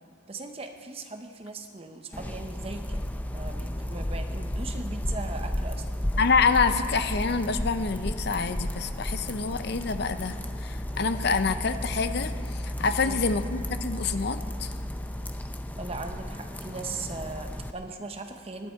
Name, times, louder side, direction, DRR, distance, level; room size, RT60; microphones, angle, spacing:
voice 1, 0.3-3.0 3.3-5.8 13.0-13.2 15.8-18.7, right 3 dB, 30° right, 6 dB, 0.8 m, -38 dB
sound 1, 2.1-17.7, left 1 dB, 10° left, 0.4 m, -33 dB
voice 2, 6.2-14.7, left 4 dB, 55° left, 10 dB, 0.6 m, -27 dB
18.5 x 10.0 x 4.5 m, 2.1 s
head